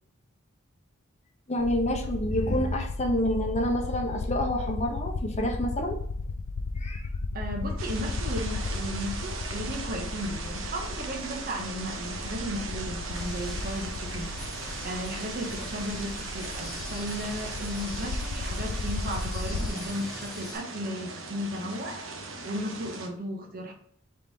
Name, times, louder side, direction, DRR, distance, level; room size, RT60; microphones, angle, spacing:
voice 1, 1.5-6.0 6.8-7.0, left 1 dB, 35° left, 2 dB, 0.8 m, -28 dB
sound 1, 1.6-19.7, left 3 dB, 80° left, 0.5 m, -35 dB
voice 2, 7.3-23.7, equal, 45° right, 2 dB, 1.0 m, -35 dB
sound 2, 7.8-23.1, right 3 dB, 75° right, 0.8 m, -39 dB
sound 3, 13.1-20.6, left 1 dB, ahead, 1.7 m, -43 dB
3.7 x 3.3 x 4.0 m, 0.65 s
head